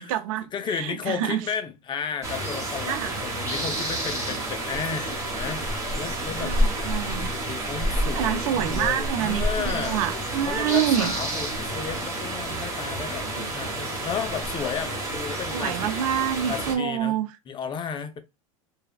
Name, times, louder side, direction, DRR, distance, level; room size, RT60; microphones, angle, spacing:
voice 1, 0.0-1.4 2.9-3.2 6.4-7.3 8.1-11.1 13.4-13.5 15.5-17.3, right 11 dB, 65° right, 0.5 m, -27 dB
voice 2, 0.5-6.6 7.3-10.0 10.5-15.9 16.5-17.2 17.5-18.2, left 7 dB, 25° left, 0.5 m, -33 dB
sound 1, 2.2-16.7, right 1 dB, 15° right, 1.1 m, -29 dB
3.2 x 2.2 x 2.3 m
hypercardioid pair, 110°, 18 cm